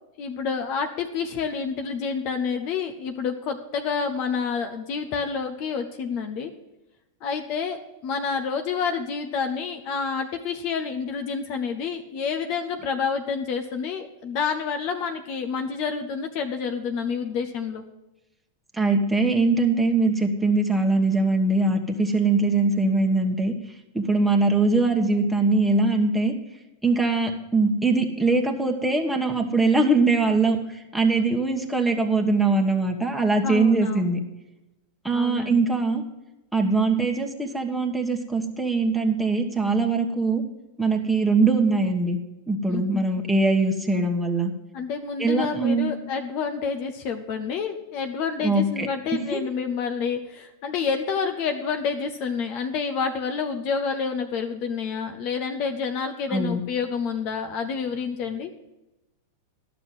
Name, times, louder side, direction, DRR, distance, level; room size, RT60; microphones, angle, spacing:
voice 1, 0.2-6.5 7.2-17.8 31.1-31.2 33.4-34.0 35.1-35.6 42.7-43.0 44.7-58.5, left 6 dB, 50° left, 6 dB, 0.9 m, -28 dB
voice 2, 18.7-23.5 23.9-26.3 26.8-34.2 35.0-36.0 36.5-40.4 40.8-42.2 42.5-44.5 45.2-45.9 48.4-48.9 49.1-49.4 56.3-56.6, right 3 dB, ahead, 0 dB, 1.4 m, -22 dB
11.5 x 6.2 x 7.7 m, 0.96 s
hypercardioid pair, 100°, 0 cm